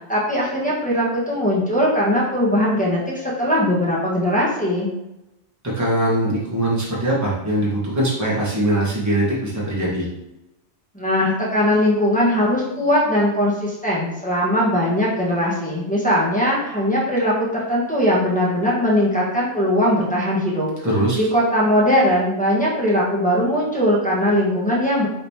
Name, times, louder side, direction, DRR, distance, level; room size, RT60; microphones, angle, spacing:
voice 1, 0.1-4.9 10.9-20.7 21.2-25.1, equal, 5° left, -6 dB, 1.2 m, -20 dB
voice 2, 5.6-10.1 20.8-21.2, right 1 dB, 15° right, -6 dB, 1.2 m, -21 dB
5.2 x 3.3 x 2.8 m, 0.91 s
omnidirectional pair, 1.1 m